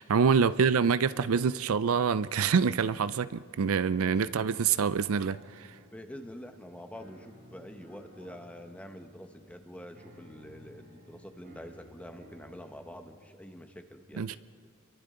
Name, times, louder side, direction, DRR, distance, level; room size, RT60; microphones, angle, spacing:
voice 1, 0.0-5.8 14.2-14.4, right 6 dB, 75° right, 15 dB, 0.5 m, -26 dB
sound 1, 0.9-12.9, equal, 50° right, 3.1 m, -56 dB
voice 2, 5.9-14.4, equal, 5° left, 5 dB, 1.2 m, -46 dB
29.5 x 23.0 x 3.8 m, 2.2 s
head